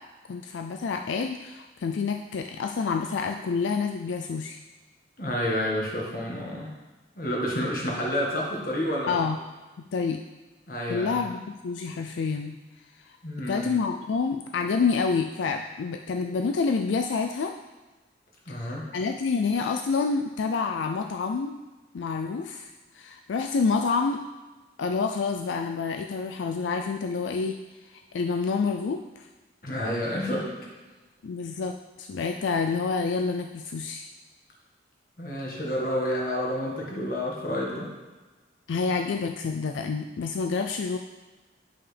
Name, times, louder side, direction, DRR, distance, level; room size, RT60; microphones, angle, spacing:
voice 1, 0.3-4.6 9.1-9.4 9.9-10.2 10.9-12.6 13.0-13.2 13.5-17.5 18.5-21.6 21.9-24.2 24.8-27.6 27.8-29.3 31.2-34.1 38.7-41.0, left 4 dB, 85° left, 4 dB, 0.4 m, -28 dB
voice 2, 5.2-6.7 7.1-9.1 10.7-11.2 13.2-13.7 18.4-18.8 29.6-30.5 35.2-37.9, equal, 50° left, -3 dB, 1.7 m, -29 dB
9.0 x 5.7 x 3.4 m, 1.2 s
head